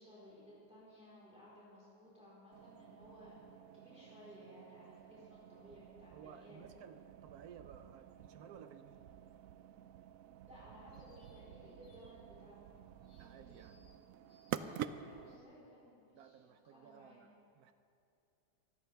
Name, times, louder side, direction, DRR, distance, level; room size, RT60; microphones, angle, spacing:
voice 1, 0.0-3.4 3.7-6.8 10.5-12.6 13.2-13.6 14.5-17.3, equal, 5° right, -9 dB, 3.9 m, -58 dB
sound 1, 2.5-15.4, right 10 dB, 85° right, 0.7 m, -49 dB
voice 2, 6.1-9.1 13.0-13.8 16.1-17.7, right 8 dB, 65° right, 10 dB, 1.0 m, -57 dB
sound 2, 10.9-11.5 11.8-12.1 13.0-14.0 14.3-14.8 15.2-15.5, left 2 dB, 40° left, 1.9 m, -71 dB
24.0 x 13.5 x 3.4 m, 2.7 s
omnidirectional pair, 2.0 m